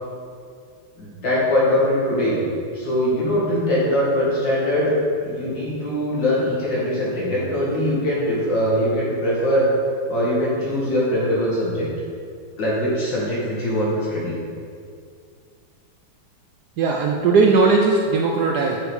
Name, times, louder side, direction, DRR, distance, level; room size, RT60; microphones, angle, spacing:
voice 1, 1.0-2.4 2.7-5.0 5.2-9.7 10.1-11.9 12.6-14.4, left 1 dB, 65° left, -7 dB, 2.7 m, -22 dB
voice 2, 16.8-18.8, right 4 dB, 70° right, 1 dB, 0.9 m, -18 dB
7.4 x 5.0 x 4.7 m, 2.3 s
omnidirectional pair, 2.1 m